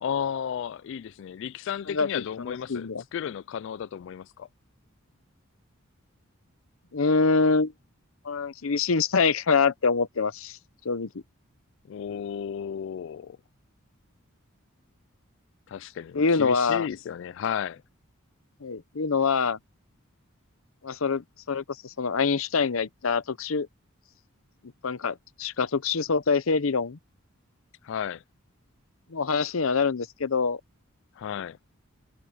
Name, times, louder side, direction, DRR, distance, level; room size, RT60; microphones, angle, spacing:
voice 1, 0.0-4.5 11.9-13.4 15.7-17.8 27.8-28.2 31.2-31.6, left 8 dB, 60° left, 0.3 m, -33 dB
voice 2, 1.9-3.0 6.9-7.7 8.2-10.6 10.8-11.1 16.1-16.9 18.6-19.6 20.8-23.7 24.8-27.0 29.1-30.6, left 4 dB, 75° left, 0.7 m, -25 dB
head